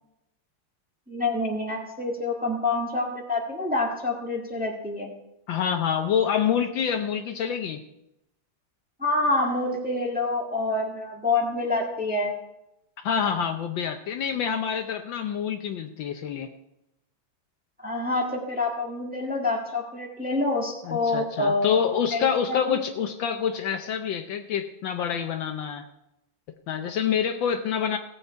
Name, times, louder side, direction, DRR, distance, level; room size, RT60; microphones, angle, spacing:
voice 1, 1.1-5.1 9.0-12.3 17.8-21.7 22.1-22.8, left 2 dB, 5° right, 0 dB, 1.3 m, -27 dB
voice 2, 5.5-7.8 13.0-16.5 20.8-25.8 26.7-28.0, left 7 dB, 70° left, 7 dB, 1.3 m, -27 dB
17.0 x 8.2 x 4.5 m, 0.87 s
omnidirectional pair, 2.4 m